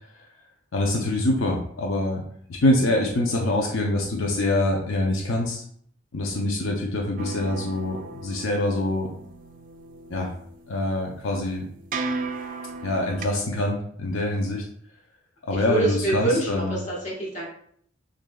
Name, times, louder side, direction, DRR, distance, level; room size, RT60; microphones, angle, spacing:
voice 1, 0.7-2.2 2.5-5.6 6.1-9.1 10.1-10.3 10.7-11.6 12.8-14.6 15.4-16.8, left 1 dB, 75° left, 0 dB, 0.6 m, -25 dB
sound 1, 7.2-13.2, right 3 dB, 40° right, 0.3 m, -36 dB
voice 2, 15.5-17.4, right 2 dB, 35° left, -4 dB, 1.3 m, -26 dB
6.3 x 2.5 x 2.3 m, 0.64 s
head